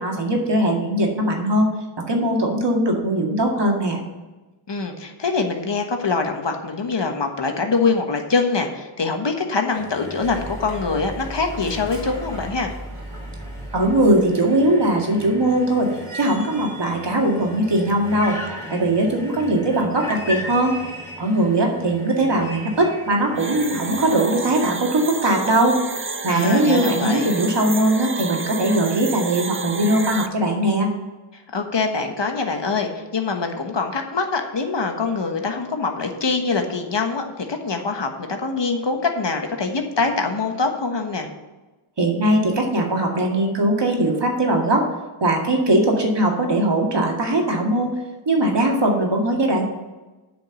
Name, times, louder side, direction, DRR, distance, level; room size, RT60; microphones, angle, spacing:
voice 1, 0.0-1.7 2.1-4.0 13.7-18.4 18.7-20.8 21.2-25.8 26.2-30.9 42.0-44.9 45.2-47.9 48.3-49.6, right 1 dB, 55° right, 0 dB, 2.2 m, -20 dB
voice 2, 4.7-12.7 26.3-27.4 31.5-41.3, left 4 dB, 55° left, 4 dB, 1.3 m, -24 dB
sound 1, 9.7-24.6, left 1 dB, 5° left, 3.2 m, -38 dB
Dog, 10.2-14.4, right 1 dB, 80° right, 2.5 m, -36 dB
sound 2, 23.4-30.3, right 4 dB, 25° right, 0.5 m, -30 dB
9.1 x 5.1 x 7.6 m, 1.2 s
wide cardioid pair, 55°, 50 cm